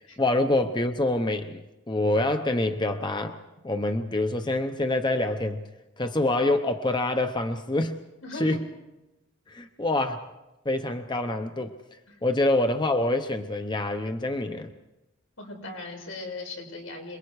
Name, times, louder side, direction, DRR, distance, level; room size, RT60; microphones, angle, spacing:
voice 1, 0.0-1.6 1.9-3.4 3.6-5.6 6.0-8.0 8.3-8.7 9.5-10.3 10.6-11.8 12.2-14.7, left 2 dB, 20° left, 7 dB, 0.8 m, -26 dB
voice 2, 8.2-8.6 12.1-12.2 15.4-17.2, left 2 dB, 85° left, 1 dB, 6.6 m, -38 dB
27.5 x 22.0 x 4.8 m, 1.0 s
head